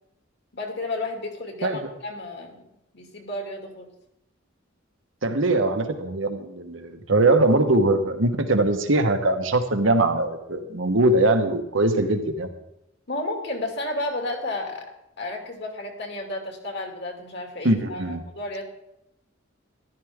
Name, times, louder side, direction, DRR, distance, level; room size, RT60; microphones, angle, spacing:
voice 1, 0.5-2.6 2.9-3.9 13.1-14.9 15.2-18.6, left 2 dB, 60° left, 2 dB, 2.6 m, -32 dB
voice 2, 5.2-12.5 17.6-18.2, right 2 dB, 70° right, 6 dB, 1.3 m, -21 dB
14.0 x 12.0 x 3.7 m, 0.85 s
head